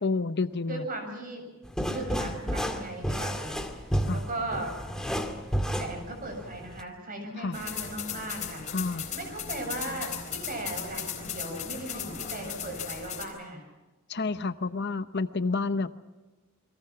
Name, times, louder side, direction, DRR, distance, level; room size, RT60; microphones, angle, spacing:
voice 1, 0.0-0.9 4.1-4.2 7.4-7.6 8.7-9.1 14.1-15.9, left 3 dB, 55° left, 12 dB, 0.8 m, -29 dB
voice 2, 0.7-1.5 1.9-4.7 5.8-8.7 9.1-13.6, right 1 dB, 45° right, 4 dB, 7.5 m, -37 dB
sound 1, 1.6-6.8, equal, 5° left, 2.1 m, -31 dB
sound 2, 7.5-13.2, left 7 dB, 35° left, 4.0 m, -37 dB
29.0 x 22.5 x 5.9 m, 1.2 s
head